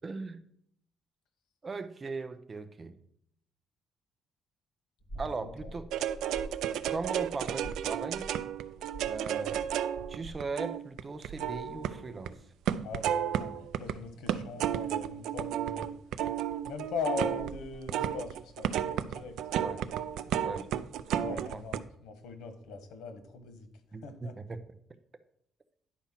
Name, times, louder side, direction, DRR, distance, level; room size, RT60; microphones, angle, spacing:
voice 1, 0.0-0.4 1.6-2.9 5.2-5.9 6.9-8.3 9.0-9.6 10.1-12.4 19.6-19.8 20.4-20.7 21.3-21.6 23.9-24.6, right 4 dB, 25° right, 10 dB, 0.7 m, -38 dB
sound 1, 5.0-10.4, right 2 dB, 20° left, 2.6 m, -47 dB
voice 2, 5.1-5.7 12.8-15.9 16.6-19.4 21.1-21.8 22.0-23.7 24.0-24.3, left 4 dB, 90° left, 8 dB, 1.4 m, -40 dB
sound 2, 5.9-12.3 12.7-13.9 14.3-21.8, right 10 dB, 85° right, 0.4 m, -33 dB
10.5 x 4.4 x 5.8 m, 0.67 s
cardioid pair, 145°, 0 cm